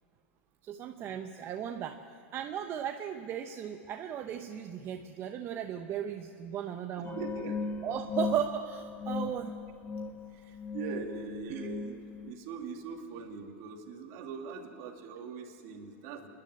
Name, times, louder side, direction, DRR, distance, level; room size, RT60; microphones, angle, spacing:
voice 1, 0.6-2.0 2.3-7.2 7.8-9.6 11.5-11.7, right 9 dB, 35° right, 6 dB, 0.9 m, -36 dB
sound 1, 7.0-12.3, left 4 dB, 25° left, 0.8 m, -37 dB
voice 2, 7.0-7.7 10.3-16.3, right 5 dB, 55° right, 3 dB, 2.5 m, -42 dB
26.5 x 10.5 x 9.8 m, 2.5 s
hypercardioid pair, 115°, 7 cm